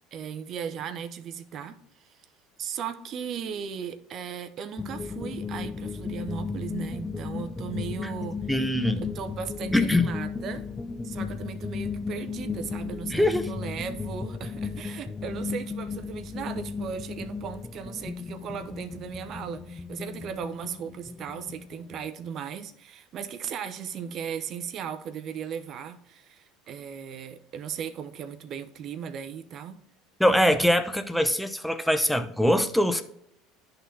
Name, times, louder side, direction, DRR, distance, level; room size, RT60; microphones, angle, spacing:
voice 1, 0.1-2.2 2.6-8.4 9.0-10.6 11.0-29.8, right 7 dB, 50° right, 9 dB, 0.7 m, -37 dB
sound 1, 4.8-22.1, left 5 dB, 20° left, 0.4 m, -35 dB
voice 2, 8.5-9.0 9.7-10.1 13.1-13.5 30.2-33.0, left 1 dB, ahead, 8 dB, 0.7 m, -23 dB
11.0 x 3.9 x 2.7 m, 0.74 s
hypercardioid pair, 90°, 0 cm